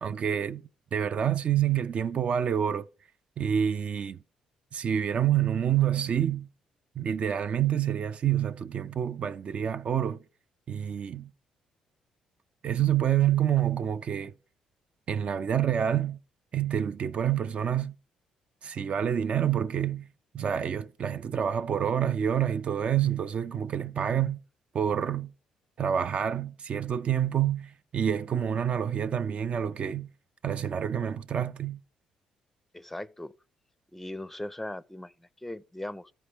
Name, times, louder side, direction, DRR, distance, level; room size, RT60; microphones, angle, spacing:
voice 1, 0.0-0.6 0.9-2.9 3.4-4.2 4.7-6.5 7.0-10.2 10.7-11.3 12.6-14.3 15.1-16.2 16.5-17.9 18.6-20.1 20.3-24.4 24.7-25.3 25.8-30.1 30.4-31.8, right 9 dB, 55° right, 0.4 m, -27 dB
voice 2, 32.7-33.3 33.9-36.1, left 1 dB, 10° left, 0.5 m, -39 dB
13.5 x 4.5 x 3.3 m
supercardioid pair, 60°, 2 cm